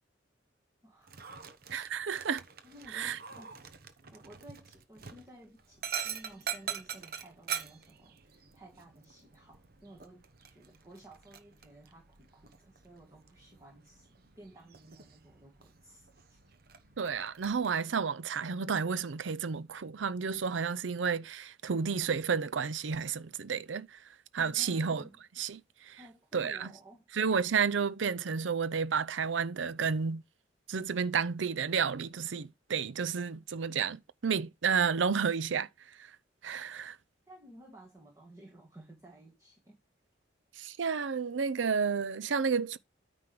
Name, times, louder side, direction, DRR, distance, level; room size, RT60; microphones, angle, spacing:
voice 1, 0.8-1.3 2.6-3.6 4.1-14.1 14.4-16.4 24.4-25.2 26.0-27.1 37.3-39.8, right 1 dB, 15° right, 1.8 m, -55 dB
Dog, 1.0-17.7, right 8 dB, 55° right, 0.9 m, -44 dB
voice 2, 1.7-2.4 2.9-3.2 17.0-24.0 24.3-25.0 25.4-26.0 26.3-26.7 27.2-30.2 30.7-35.7 36.0-36.1 36.4-37.0 40.6-42.8, right 6 dB, 80° right, 0.6 m, -31 dB
9.5 x 3.4 x 6.0 m
head